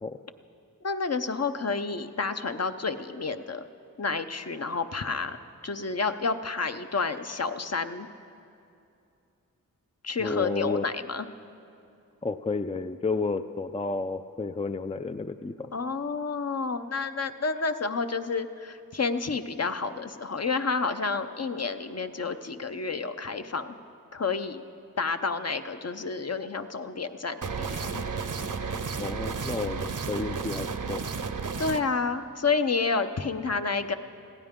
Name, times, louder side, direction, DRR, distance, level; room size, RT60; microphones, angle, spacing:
voice 1, 0.8-3.6 4.0-5.4 5.6-8.1 10.0-11.3 15.7-23.8 24.1-24.6 25.0-28.0 31.6-34.0, left 4 dB, 45° left, 9 dB, 0.7 m, -30 dB
voice 2, 10.2-10.9 12.2-15.7 29.0-31.0, left 3 dB, 20° left, 10 dB, 0.4 m, -31 dB
sound 1, 27.4-31.8, right 5 dB, 60° right, 0.8 m, -32 dB
21.0 x 15.5 x 3.7 m, 2.6 s
cardioid pair, 45°, 35 cm